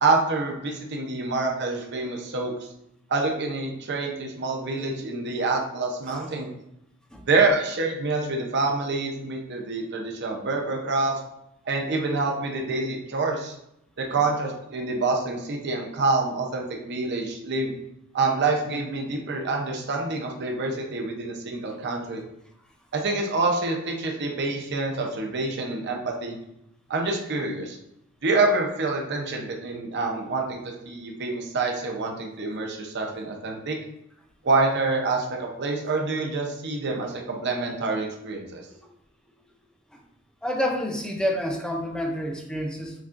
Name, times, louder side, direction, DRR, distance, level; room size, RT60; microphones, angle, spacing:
voice 1, 0.0-2.5 3.1-6.5 7.3-11.2 11.7-13.6 14.0-17.7 18.1-22.2 22.9-26.4 26.9-27.8 28.2-33.8 34.4-38.6, right 3 dB, 50° right, 1 dB, 0.7 m, -26 dB
voice 2, 40.4-42.9, equal, 5° left, 1 dB, 0.5 m, -28 dB
7.1 x 2.4 x 2.5 m, 0.81 s
head